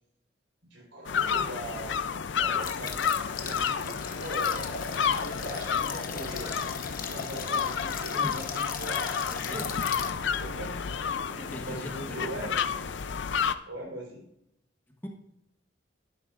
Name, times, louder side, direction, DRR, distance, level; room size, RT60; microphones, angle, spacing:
voice 1, 0.7-2.0 2.3-4.7 5.0-6.6 6.9-9.7 10.2-10.9 11.3-13.0 13.7-14.2, right 1 dB, 75° right, -1 dB, 4.1 m, -41 dB
sound 1, 1.1-13.5, left 7 dB, 65° left, 0.5 m, -31 dB
sound 2, 2.6-10.1, left 6 dB, 50° left, 1.0 m, -38 dB
voice 2, 9.3-9.6 11.5-12.5 15.0-15.1, equal, 10° left, 2 dB, 1.1 m, -40 dB
12.5 x 10.5 x 2.5 m, 0.76 s
head